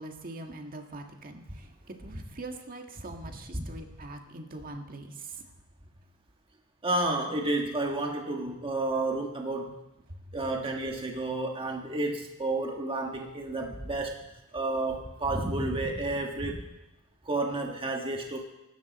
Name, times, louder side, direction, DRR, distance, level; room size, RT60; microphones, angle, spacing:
voice 1, 0.0-1.7 2.0-5.1, right 2 dB, 40° right, 3 dB, 1.7 m, -42 dB
voice 2, 6.8-9.7 10.3-14.3 14.5-16.6 17.2-18.4, right 2 dB, 25° right, 1 dB, 1.5 m, -31 dB
24.5 x 12.5 x 4.2 m, 0.99 s
head